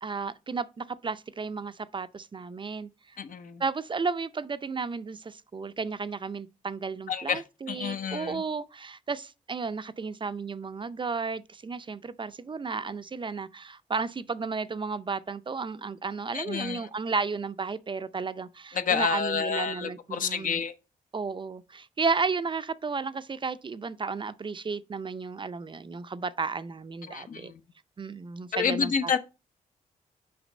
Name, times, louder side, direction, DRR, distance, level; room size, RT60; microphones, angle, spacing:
voice 1, 0.0-3.2 3.6-20.6 21.1-27.5 28.0-29.2, right 4 dB, 35° right, 0.5 m, -33 dB
voice 2, 3.2-3.6 7.1-7.4 7.7-8.4 16.3-16.9 18.7-20.7 27.1-27.6 28.5-29.2, left 6 dB, 65° left, 0.9 m, -29 dB
6.0 x 4.9 x 5.3 m
cardioid pair, 65°, 15 cm